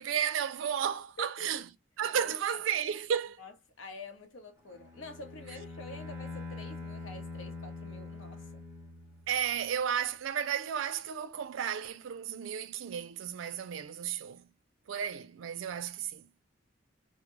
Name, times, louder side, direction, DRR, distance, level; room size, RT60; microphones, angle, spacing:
voice 1, 0.0-1.6 2.0-3.4 9.3-14.5 14.9-16.3, right 8 dB, 80° right, 0.4 m, -33 dB
voice 2, 2.2-2.6 3.4-8.6, left 2 dB, 90° left, 0.8 m, -47 dB
Bowed string instrument, 4.7-9.5, left 3 dB, 10° right, 0.6 m, -44 dB
2.2 x 2.0 x 2.9 m
head